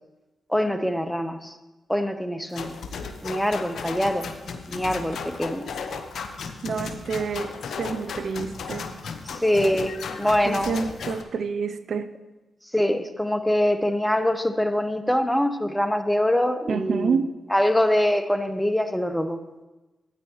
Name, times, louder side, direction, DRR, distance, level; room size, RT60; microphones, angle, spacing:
voice 1, 0.5-1.6 1.9-2.8 3.2-4.3 4.7-5.7 9.3-10.7 12.7-17.2 17.5-19.4, left 1 dB, 5° left, 9 dB, 0.9 m, -24 dB
sound 1, 2.5-11.2, left 5 dB, 70° left, 0.8 m, -35 dB
voice 2, 6.6-9.0 10.4-12.2 16.7-17.3, right 5 dB, 65° right, 12 dB, 0.4 m, -28 dB
12.5 x 9.2 x 3.1 m, 1.1 s
supercardioid pair, 40°, 0 cm